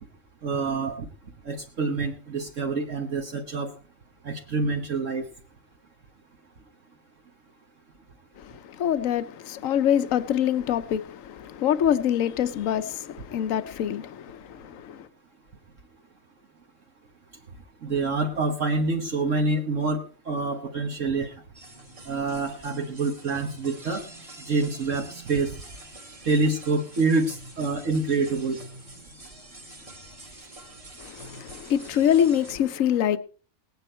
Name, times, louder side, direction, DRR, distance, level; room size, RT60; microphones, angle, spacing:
voice 1, 0.4-1.0 1.4-3.7 4.2-5.3 17.8-21.3 22.1-24.0 24.5-25.5 26.2-28.6, right 3 dB, 60° right, 1.7 m, -26 dB
voice 2, 8.4-15.1 31.0-33.2, left 9 dB, 70° left, 1.2 m, -25 dB
sound 1, 21.5-32.6, right 1 dB, 25° right, 1.8 m, -46 dB
19.0 x 9.2 x 4.4 m
omnidirectional pair, 1.5 m